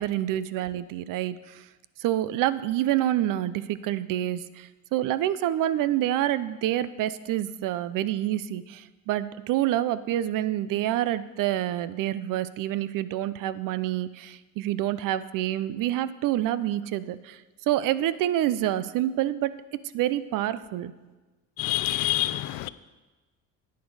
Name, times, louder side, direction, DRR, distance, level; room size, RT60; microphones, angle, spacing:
voice 1, 0.0-1.6 2.0-19.6 19.8-20.9, right 13 dB, 65° right, 0.6 m, -27 dB
voice 2, 21.6-22.7, left 16 dB, 80° left, 0.5 m, -27 dB
10.0 x 9.4 x 4.8 m
cardioid pair, 120°, 34 cm